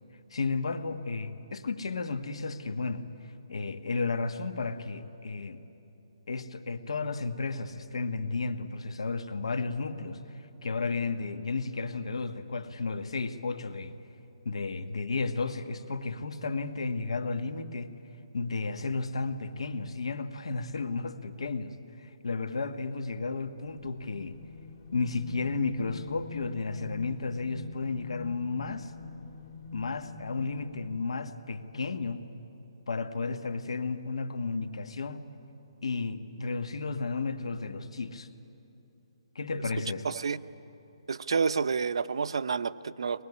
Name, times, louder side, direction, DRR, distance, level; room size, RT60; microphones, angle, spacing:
voice 1, 0.3-5.6 6.3-13.9 14.4-17.9 18.3-24.4 24.9-28.9 29.7-32.3 32.9-35.3 35.8-38.3 39.3-40.0, left 4 dB, 80° left, 8 dB, 1.6 m, -33 dB
sound 1, 23.6-31.3, left 4 dB, 40° left, 1.8 m, -45 dB
voice 2, 40.0-40.4 41.1-43.2, right 5 dB, 65° right, 12 dB, 0.7 m, -29 dB
22.5 x 20.5 x 9.8 m, 3.0 s
hypercardioid pair, 175°, 3 cm